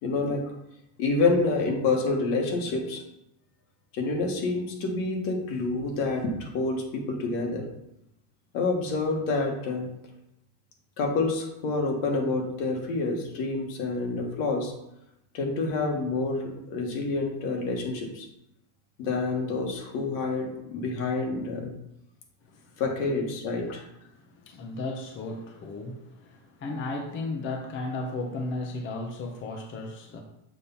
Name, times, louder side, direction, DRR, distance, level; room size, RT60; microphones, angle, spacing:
voice 1, 0.0-0.4 1.0-3.0 3.9-7.6 8.5-9.9 11.0-14.7 15.3-18.3 19.0-21.7 22.8-23.8, left 3 dB, 70° left, 1.7 m, -28 dB
voice 2, 22.5-23.1 23.7-23.8 24.1-30.2, left 2 dB, 25° left, 0.6 m, -35 dB
6.9 x 2.8 x 5.4 m
supercardioid pair, 125°, 47 cm